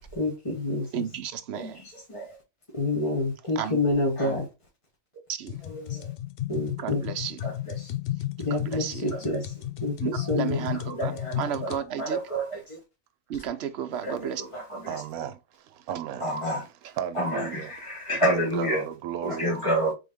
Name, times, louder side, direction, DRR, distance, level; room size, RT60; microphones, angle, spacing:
voice 1, 0.1-1.0 1.5-2.4 2.7-4.5 5.6-6.1 6.5-7.0 7.4-7.9 8.4-12.8 13.9-15.0 16.2-16.7 17.1-18.9 19.2-19.9, left 1 dB, 25° left, 1.1 m, -29 dB
voice 2, 0.9-1.8 3.6-3.8 5.4-5.5 6.8-7.4 8.7-9.0 10.0-11.1 11.4-12.2 13.3-14.4, right 9 dB, 60° right, 0.8 m, -32 dB
sound 1, 5.5-11.8, left 13 dB, 70° left, 0.5 m, -33 dB
voice 3, 14.9-16.4 16.8-17.7 18.1-19.5, right 10 dB, 85° right, 1.1 m, -35 dB
3.8 x 3.5 x 3.5 m
omnidirectional pair, 1.5 m